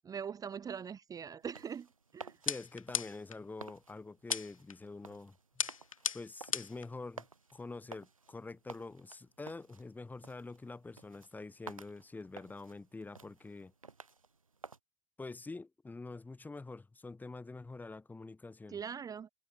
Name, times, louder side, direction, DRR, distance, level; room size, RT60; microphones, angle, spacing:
voice 1, 0.0-1.9 2.1-2.4 18.7-19.3, right 7 dB, 20° right, 1.3 m, -42 dB
sound 1, 1.4-14.8, right 4 dB, 85° right, 2.7 m, -54 dB
sound 2, 2.5-3.4 4.3-4.8 5.6-6.9, left 7 dB, 80° left, 1.0 m, -36 dB
voice 2, 2.5-5.4 6.1-7.3 7.5-13.7 15.2-18.8, left 3 dB, 10° left, 2.2 m, -46 dB
figure-of-eight pair, 90°, 17 cm